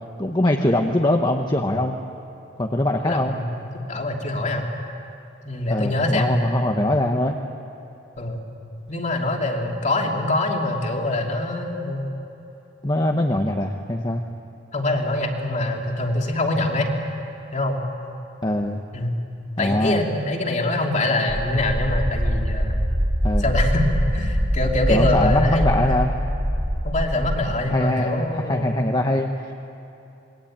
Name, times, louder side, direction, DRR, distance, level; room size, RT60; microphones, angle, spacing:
voice 1, 0.2-1.9 2.6-3.3 5.7-7.4 12.8-14.2 18.4-18.8 19.6-20.0 23.2-23.5 24.9-26.1 27.7-29.5, left 1 dB, 25° left, 2 dB, 1.1 m, -22 dB
voice 2, 3.0-4.7 5.4-6.4 8.2-8.4 8.9-12.1 14.7-16.9 17.5-17.8 18.9-19.2 19.6-22.8 23.4-26.0 26.8-28.9, left 1 dB, 40° left, 1 dB, 2.9 m, -24 dB
sound 1, 21.3-27.4, equal, 50° right, 4.6 m, -23 dB
27.0 x 22.5 x 8.8 m, 2.9 s
head